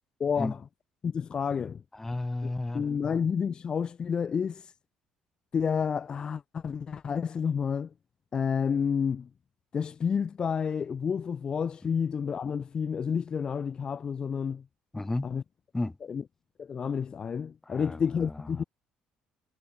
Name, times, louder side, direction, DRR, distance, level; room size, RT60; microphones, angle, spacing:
voice 1, 0.2-0.6 1.0-1.8 2.7-4.7 5.5-7.9 8.3-9.3 9.7-14.6 15.2-15.4 16.1-16.2 16.6-18.6, left 6 dB, 35° left, 0.6 m, -30 dB
voice 2, 1.9-2.9 11.8-12.0 14.9-15.3 15.7-16.0 17.7-18.6, left 2 dB, 10° left, 1.8 m, -33 dB
cardioid pair, 95°, 2 cm